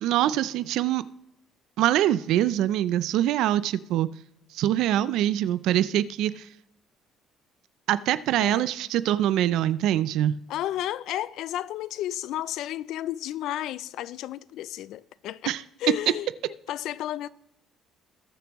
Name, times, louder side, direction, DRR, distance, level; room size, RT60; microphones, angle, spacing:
voice 1, 0.0-1.0 1.8-4.1 4.5-6.5 7.9-10.4 15.5-15.6, right 12 dB, 70° right, 0.4 m, -24 dB
voice 2, 10.5-16.3 16.7-17.3, left 13 dB, 60° left, 0.3 m, -32 dB
20.0 x 6.8 x 3.0 m
cardioid pair, 170°, 0 cm